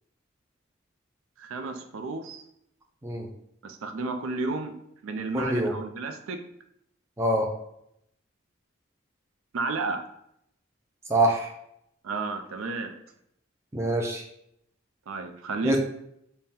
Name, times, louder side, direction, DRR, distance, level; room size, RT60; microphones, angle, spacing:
voice 1, 1.4-2.4 3.6-4.7 5.0-6.4 9.5-10.0 12.0-12.9 15.1-15.8, right 3 dB, 80° right, 6 dB, 0.4 m, -32 dB
voice 2, 5.3-5.7 7.2-7.5 11.1-11.5 13.7-14.2 15.6-15.8, right 1 dB, 15° right, 2 dB, 0.3 m, -24 dB
3.6 x 2.1 x 4.1 m, 0.76 s
head